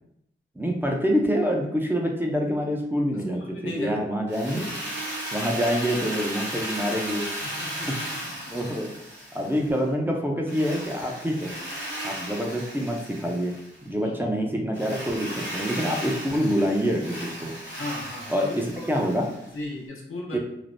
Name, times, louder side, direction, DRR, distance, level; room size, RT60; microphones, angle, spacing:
voice 1, 0.6-4.7 5.3-7.3 7.9-8.0 8.5-8.9 9.3-11.5 12.0-13.5 13.8-17.5 18.3-19.3 20.3-20.4, equal, 10° right, 0 dB, 0.5 m, -26 dB
voice 2, 3.3-3.9 7.4-8.0 8.4-8.5 14.0-14.2 17.7-19.2 19.5-20.4, left 2 dB, 85° left, -2 dB, 0.7 m, -36 dB
Drill, 4.3-9.8 10.5-13.8 14.7-19.5, right 1 dB, 60° right, 1.1 m, -35 dB
3.2 x 2.0 x 2.5 m, 0.78 s
cardioid pair, 55°, 21 cm